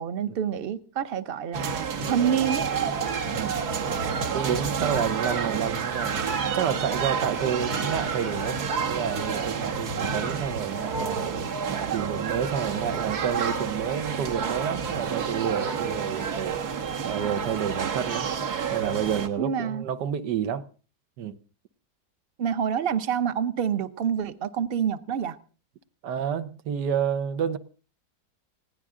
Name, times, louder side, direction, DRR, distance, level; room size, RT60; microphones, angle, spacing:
voice 1, 0.0-2.7 19.4-19.9 22.4-25.4, right 8 dB, 45° right, 0.8 m, -27 dB
sound 1, 1.5-19.3, right 6 dB, 70° right, 1.8 m, -29 dB
voice 2, 3.2-3.6 4.3-11.2 11.7-16.6 17.0-18.3 18.7-20.7 21.2-21.3 26.0-27.6, right 8 dB, 85° right, 1.6 m, -29 dB
20.0 x 16.0 x 3.7 m
omnidirectional pair, 1.8 m